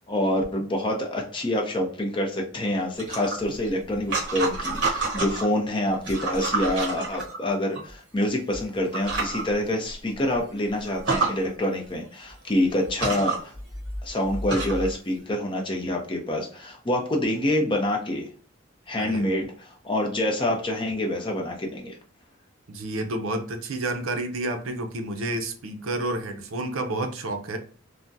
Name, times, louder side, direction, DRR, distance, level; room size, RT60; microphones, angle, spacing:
voice 1, 0.0-13.5 14.0-18.3 18.9-22.0, left 1 dB, 25° left, 1 dB, 0.5 m, -26 dB
sound 1, 3.0-5.5 6.0-7.8 8.5-8.6 8.9-9.4 9.9-10.0 10.3-10.4 10.9-11.3 12.3-12.4 12.9-14.9, right 3 dB, 55° right, 1.3 m, -29 dB
voice 2, 19.0-19.3 22.7-27.6, right 2 dB, 80° right, 6 dB, 0.5 m, -30 dB
3.4 x 2.1 x 2.6 m, 0.42 s
head